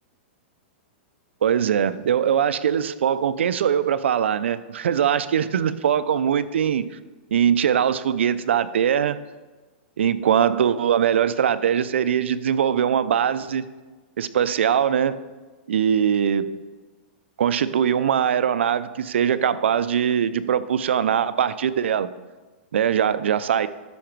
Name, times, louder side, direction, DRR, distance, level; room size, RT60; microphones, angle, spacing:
voice 1, 1.4-6.9 7.3-9.2 10.0-13.6 14.2-15.2 15.7-16.5 17.4-22.1 22.7-23.7, right 8 dB, 90° right, 15 dB, 0.5 m, -21 dB
12.5 x 4.9 x 4.6 m, 1.3 s
hypercardioid pair, 155°, 6 cm